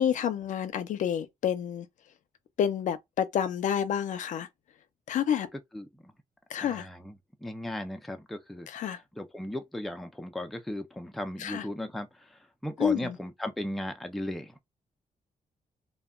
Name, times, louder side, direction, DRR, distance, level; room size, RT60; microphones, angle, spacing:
voice 1, 0.0-1.9 2.6-4.5 5.1-5.5 6.5-6.9 8.7-9.0 11.4-11.6 12.8-13.2, left 9 dB, 65° left, 0.5 m, -29 dB
voice 2, 5.7-6.1 6.6-14.6, left 1 dB, ahead, 0.3 m, -37 dB
2.1 x 2.1 x 3.6 m
wide cardioid pair, 170°, 14 cm